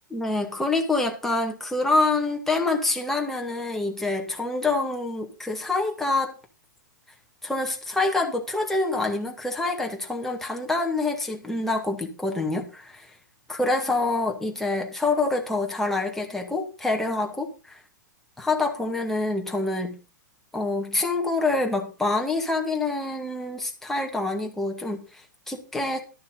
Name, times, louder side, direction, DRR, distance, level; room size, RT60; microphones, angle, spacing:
voice 1, 0.1-6.3 7.4-13.1 13.5-17.8 18.4-20.0 20.5-26.0, left 2 dB, 5° left, 1 dB, 2.0 m, -26 dB
12.0 x 6.6 x 5.4 m, 0.33 s
figure-of-eight pair, 105°, 10 cm